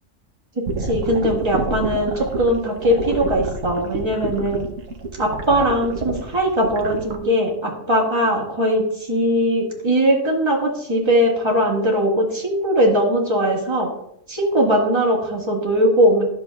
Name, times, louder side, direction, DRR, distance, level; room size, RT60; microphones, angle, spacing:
sound 1, 0.7-7.2, right 3 dB, 80° right, 1.3 m, -27 dB
voice 1, 0.8-4.7 5.2-13.9 14.3-16.2, equal, 20° right, -3 dB, 1.8 m, -20 dB
11.0 x 7.0 x 2.3 m, 0.75 s
omnidirectional pair, 1.3 m